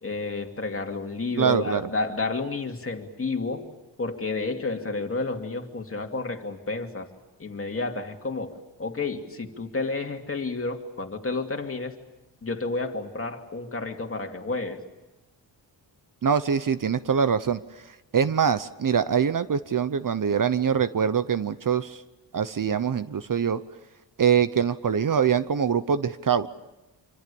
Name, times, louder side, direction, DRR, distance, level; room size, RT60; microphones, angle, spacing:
voice 1, 0.0-3.7 4.0-7.1 7.4-11.9 12.4-14.8, left 3 dB, 30° left, 3 dB, 2.7 m, -31 dB
voice 2, 1.4-1.8 16.2-17.6 18.1-22.0 22.3-23.6 24.2-26.5, right 7 dB, 50° right, 13 dB, 0.9 m, -23 dB
26.5 x 25.5 x 7.0 m, 1.0 s
wide cardioid pair, 125°, 43 cm